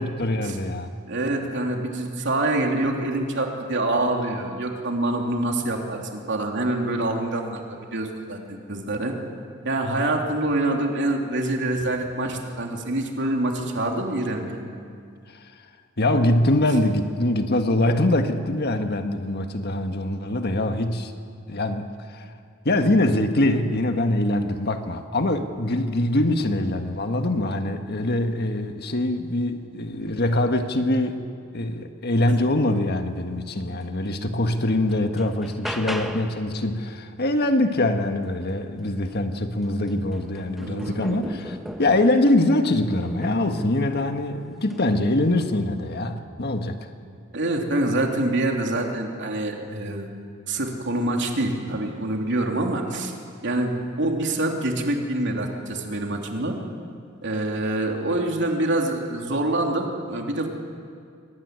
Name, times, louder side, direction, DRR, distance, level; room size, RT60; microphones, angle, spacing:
voice 1, 0.0-0.9 15.3-15.5 16.0-21.1 21.5-22.3 22.6-31.2 31.5-46.9, left 1 dB, 55° left, 6 dB, 1.6 m, -23 dB
voice 2, 1.1-9.1 9.6-14.6 40.6-41.4 47.3-50.1 50.5-53.1 53.4-53.7 54.0-56.6 57.2-60.5, right 1 dB, 60° right, 1 dB, 3.3 m, -26 dB
sound 1, 34.1-34.2 34.6-36.4 38.8-38.9 39.3-42.3 43.0-43.6 44.6-44.9, equal, ahead, 1.5 m, -37 dB
24.0 x 19.0 x 9.5 m, 2.2 s
head